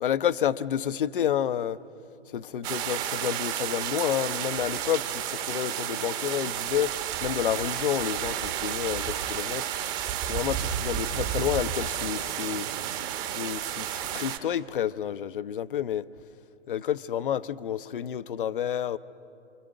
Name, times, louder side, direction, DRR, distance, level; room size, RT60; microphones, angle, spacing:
voice 1, 0.0-1.8 2.3-6.9 7.2-9.7 10.3-12.7 13.3-16.1 16.7-19.0, left 10 dB, 55° left, 15 dB, 0.8 m, -29 dB
sound 1, 2.6-14.4, right 10 dB, 30° right, 1.3 m, -31 dB
27.5 x 26.0 x 6.7 m, 2.6 s
figure-of-eight pair, 115°, 33 cm